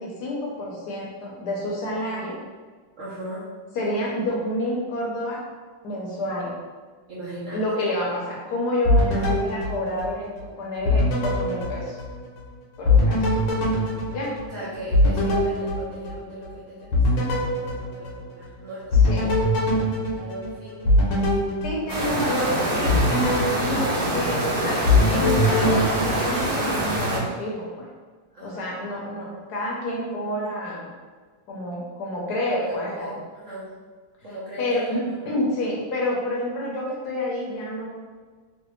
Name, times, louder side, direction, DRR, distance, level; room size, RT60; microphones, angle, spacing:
voice 1, 0.0-2.4 3.8-5.4 5.8-6.5 7.5-10.3 10.6-12.0 12.8-13.3 14.1-14.3 19.0-19.3 21.6-22.9 23.6-24.8 25.1-27.9 28.4-30.9 31.5-33.1 34.6-35.0 35.3-37.9, left 1 dB, 70° left, -3 dB, 1.2 m, -28 dB
voice 2, 3.0-3.5 7.1-7.6 9.1-9.4 13.0-13.5 14.5-19.8 20.0-21.5 22.0-23.2 28.3-28.7 32.5-33.7 34.2-34.7 35.0-35.3, right 1 dB, 55° right, -9 dB, 0.9 m, -38 dB
sound 1, 8.9-10.5 10.9-12.5 12.9-16.5 16.9-18.5 18.9-22.4 22.9-24.5 24.9-26.8, left 2 dB, 85° left, 1.4 m, -23 dB
sound 2, 21.9-27.2, right 1 dB, 75° right, 0.5 m, -25 dB
3.2 x 2.7 x 3.1 m, 1.4 s
omnidirectional pair, 2.0 m